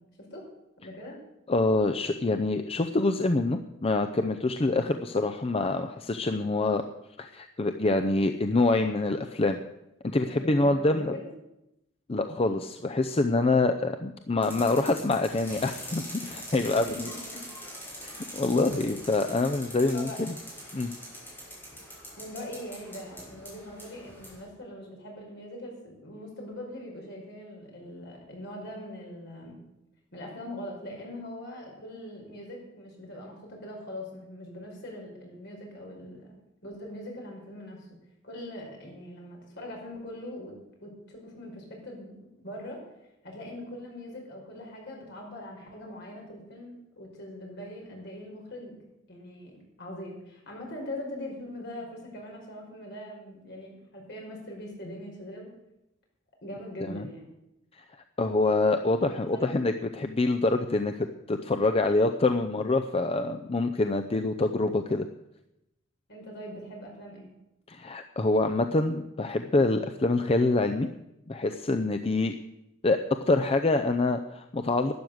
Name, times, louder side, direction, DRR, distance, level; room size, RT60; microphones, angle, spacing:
voice 1, 0.8-1.2 10.3-11.3 16.6-17.4 19.9-20.2 22.2-29.6 30.1-36.4 36.6-37.9 38.2-40.5 40.8-42.8 43.2-48.7 49.1-55.5 56.4-57.3 59.2-59.5 66.1-67.3, left 1 dB, 60° left, 0 dB, 5.2 m, -42 dB
voice 2, 1.5-6.8 7.2-9.6 10.1-11.1 12.1-17.1 18.0-20.3 20.7-20.9 56.8-57.1 58.2-65.1 67.7-70.9 71.3-72.3 72.8-73.0 73.3-74.9, left 2 dB, 30° left, 7 dB, 0.6 m, -26 dB
sound 1, 14.4-24.4, equal, 10° left, 5.9 m, -43 dB
12.0 x 10.5 x 7.9 m, 0.89 s
head